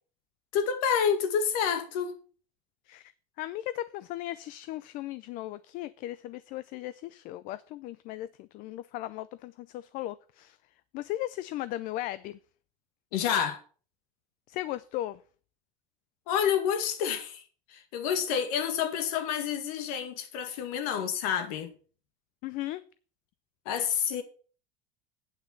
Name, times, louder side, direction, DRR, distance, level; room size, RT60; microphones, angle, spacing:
voice 1, 0.5-2.1 13.1-13.6 16.3-17.4 17.7-21.7 23.7-24.2, left 8 dB, 75° left, 2.0 m, -28 dB
voice 2, 3.4-10.6 10.9-12.4 14.5-15.2 22.4-22.8, left 15 dB, 45° left, 0.5 m, -37 dB
8.9 x 5.8 x 7.2 m
cardioid pair, 150°, 19 cm